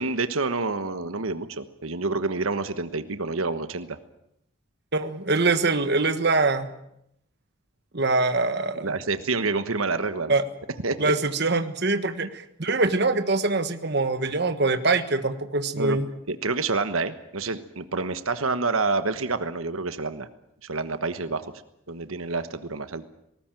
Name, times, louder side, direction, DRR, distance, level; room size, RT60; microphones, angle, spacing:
voice 1, 0.0-4.0 8.8-10.4 10.8-11.1 15.8-16.0 16.3-20.3 20.6-21.4 21.9-23.1, right 3 dB, 90° right, 11 dB, 1.3 m, -28 dB
voice 2, 4.9-6.7 7.9-8.9 10.3-10.4 11.0-16.1, right 3 dB, 55° right, 9 dB, 1.4 m, -23 dB
19.5 x 19.0 x 9.1 m, 0.77 s
head